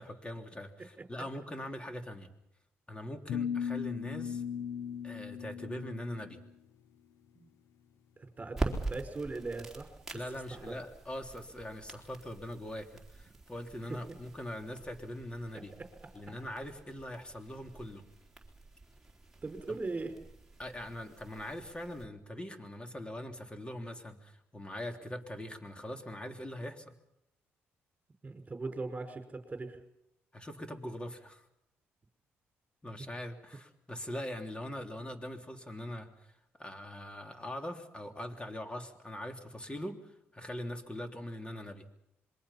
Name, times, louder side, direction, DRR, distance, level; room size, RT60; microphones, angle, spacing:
voice 1, 0.0-2.3 2.9-4.4 5.0-6.4 10.1-15.7 16.1-18.0 19.7-19.8 20.6-26.9 30.3-31.5 32.8-41.9, left 1 dB, 20° left, 5 dB, 3.4 m, -42 dB
sound 1, 3.3-6.4, left 8 dB, 80° left, 0.9 m, -37 dB
voice 2, 8.2-10.2 10.5-10.7 13.9-14.0 15.5-16.1 19.4-20.2 28.2-29.8, right 3 dB, 30° right, 6 dB, 5.0 m, -40 dB
sound 2, 8.5-22.0, right 2 dB, 5° right, 3.8 m, -44 dB
26.5 x 22.5 x 5.8 m, 0.83 s
supercardioid pair, 65°, 5 cm